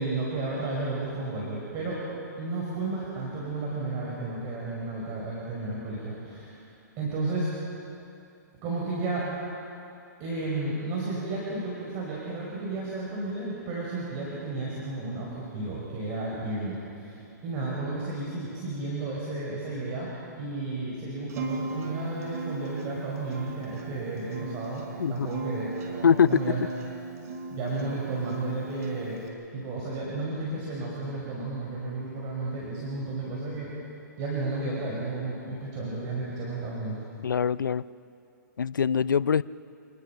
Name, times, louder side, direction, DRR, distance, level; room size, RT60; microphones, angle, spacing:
voice 1, 0.0-2.0 2.4-6.6 7.0-7.5 8.6-9.3 10.2-20.1 20.4-26.6 27.5-29.2 29.5-33.7 34.2-37.0, right 2 dB, 35° right, -5 dB, 5.4 m, -33 dB
Acoustic guitar, 21.3-29.3, right 3 dB, 50° right, 4.5 m, -38 dB
voice 2, 37.2-37.8 38.6-39.4, left 7 dB, 85° left, 19 dB, 0.5 m, -23 dB
28.0 x 20.5 x 5.9 m, 2.6 s
hypercardioid pair, 135°, 10 cm